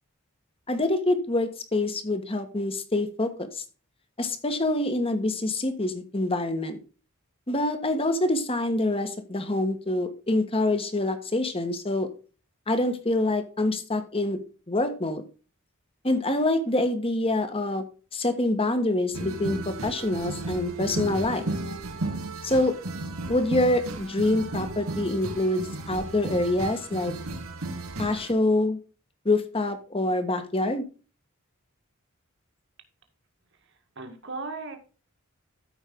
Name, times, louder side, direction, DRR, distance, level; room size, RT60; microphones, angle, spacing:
voice 1, 0.7-3.6 4.2-6.8 7.5-12.1 12.7-14.4 14.7-15.2 16.0-17.8 18.1-21.4 22.4-22.8 23.3-27.1 28.0-28.8 29.2-30.8, left 2 dB, 25° left, 8 dB, 1.4 m, -26 dB
sound 1, 19.1-28.3, right 2 dB, 90° right, 1.5 m, -34 dB
voice 2, 33.6-34.8, right 3 dB, 60° right, 5 dB, 2.0 m, -37 dB
13.5 x 5.3 x 3.7 m, 0.36 s
head